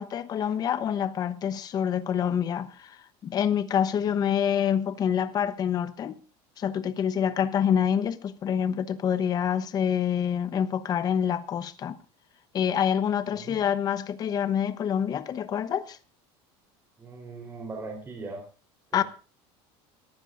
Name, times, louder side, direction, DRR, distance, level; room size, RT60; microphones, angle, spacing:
voice 1, 0.0-3.0 3.2-6.2 6.6-12.0 12.5-16.0 18.9-19.0, left 8 dB, 30° left, 0.9 m, -26 dB
voice 2, 17.0-18.4 18.9-19.0, right 3 dB, 15° right, 3.9 m, -39 dB
22.0 x 14.5 x 2.6 m
cardioid pair, 155°, 13 cm